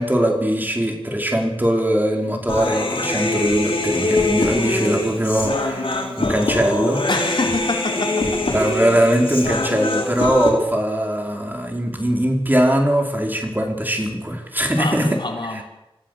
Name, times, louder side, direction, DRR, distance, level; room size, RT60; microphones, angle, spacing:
voice 1, 0.0-7.0 8.5-15.1, equal, 20° right, 1 dB, 5.3 m, -21 dB
Human voice, 2.5-10.5, left 2 dB, 80° left, 4.4 m, -23 dB
voice 2, 7.1-8.7 14.7-15.6, left 2 dB, 60° left, 2 dB, 3.5 m, -26 dB
27.5 x 15.0 x 7.0 m, 0.92 s
wide cardioid pair, 50°, 9 cm